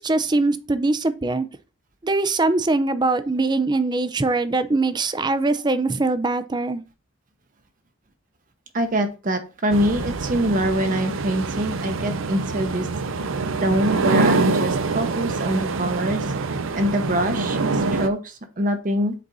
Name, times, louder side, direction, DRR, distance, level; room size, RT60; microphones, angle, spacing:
voice 1, 0.0-1.5 2.0-6.8, right 3 dB, 20° right, 0.5 m, -22 dB
voice 2, 8.7-12.9 13.6-16.2 16.7-19.1, right 1 dB, 40° right, 0.9 m, -24 dB
sound 1, 9.7-18.1, right 3 dB, 75° right, 0.6 m, -25 dB
7.6 x 4.0 x 4.0 m
head